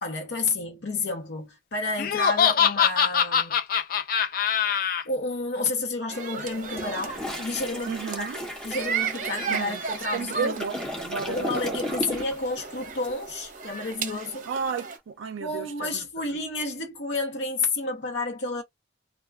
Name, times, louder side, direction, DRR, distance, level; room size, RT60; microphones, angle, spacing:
voice 1, 0.0-3.6 5.0-10.6 11.3-14.5 15.4-18.6, left 3 dB, 70° left, 0.8 m, -31 dB
Laughter, 2.0-5.0, left 8 dB, 45° left, 0.3 m, -23 dB
sound 1, 6.1-15.0, right 5 dB, 40° right, 0.7 m, -35 dB
Toilet flush, 6.6-12.5 12.8-13.1, equal, 5° left, 0.6 m, -36 dB
voice 2, 7.9-8.4 9.5-9.8 10.1-11.8 14.5-16.0, right 5 dB, 90° right, 0.4 m, -32 dB
2.3 x 2.2 x 3.2 m
head